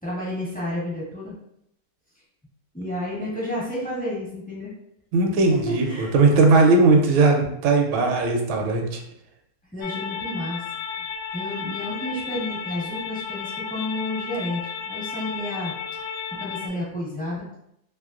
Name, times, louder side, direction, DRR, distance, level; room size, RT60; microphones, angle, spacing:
voice 1, 0.0-1.3 2.7-4.7 5.5-6.1 9.7-10.6 11.3-15.7 16.4-17.5, left 1 dB, 10° left, -8 dB, 0.5 m, -31 dB
voice 2, 5.1-9.0, right 3 dB, 75° right, 3 dB, 1.4 m, -18 dB
sound 1, 9.8-16.7, left 6 dB, 85° left, 0.9 m, -33 dB
3.4 x 3.0 x 2.4 m, 0.74 s
omnidirectional pair, 2.3 m